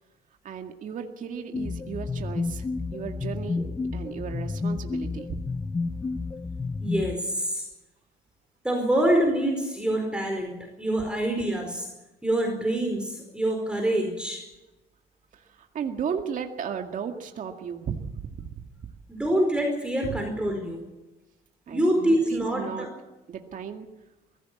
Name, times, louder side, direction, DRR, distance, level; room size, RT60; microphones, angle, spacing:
voice 1, 0.4-2.7 2.9-3.7 3.9-5.4 15.3-18.6 20.0-20.1 21.7-22.9 23.3-23.9, right 7 dB, 50° right, 4 dB, 2.1 m, -35 dB
sound 1, 1.5-7.2, left 3 dB, 20° left, 0.8 m, -31 dB
voice 2, 6.8-7.7 8.6-11.9 12.2-14.5 19.1-20.8 21.7-22.9, right 1 dB, 5° right, 2 dB, 4.8 m, -26 dB
22.0 x 16.0 x 8.4 m, 1.0 s
cardioid pair, 110°, 17 cm